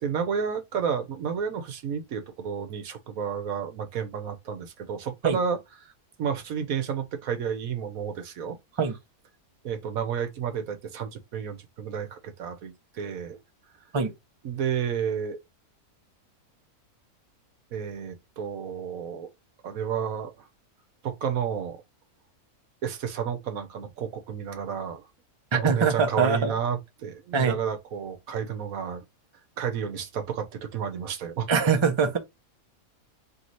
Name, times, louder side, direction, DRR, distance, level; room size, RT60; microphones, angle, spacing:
voice 1, 0.0-5.6 6.2-8.6 9.6-13.4 14.4-15.4 17.7-19.3 19.6-20.3 21.0-21.8 22.8-25.0 25.5-29.0 29.6-31.5, right 7 dB, 70° right, 1.2 m, -31 dB
voice 2, 25.5-26.5 27.3-27.6 31.5-32.2, right 5 dB, 35° right, 0.5 m, -23 dB
3.2 x 3.1 x 4.0 m
omnidirectional pair, 1.6 m